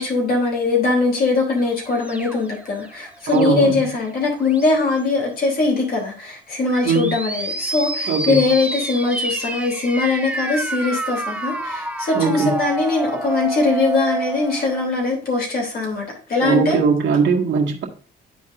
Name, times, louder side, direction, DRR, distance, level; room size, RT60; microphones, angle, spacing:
voice 1, 0.0-16.8, left 3 dB, 50° left, 3.2 m, -21 dB
sound 1, 1.6-3.8 4.3-5.0 6.6-14.9, right 2 dB, 5° right, 0.8 m, -29 dB
voice 2, 3.3-3.8 6.9-7.1 8.1-8.5 12.2-12.6 16.4-17.8, right 5 dB, 65° right, 2.0 m, -19 dB
12.0 x 4.1 x 2.6 m
cardioid pair, 90°, 20 cm